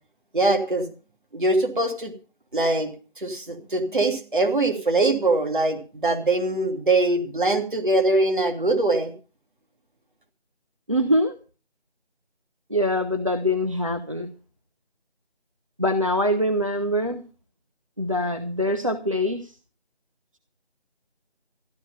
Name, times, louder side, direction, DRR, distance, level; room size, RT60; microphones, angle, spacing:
voice 1, 0.3-0.9 1.3-2.1 2.5-2.9 3.2-9.1, right 2 dB, 50° right, 4 dB, 3.0 m, -22 dB
voice 2, 10.9-11.3 12.7-14.3 15.8-17.2 18.0-19.5, left 1 dB, 30° right, 7 dB, 0.8 m, -24 dB
14.0 x 12.0 x 5.5 m, 0.36 s
figure-of-eight pair, 175°, 32 cm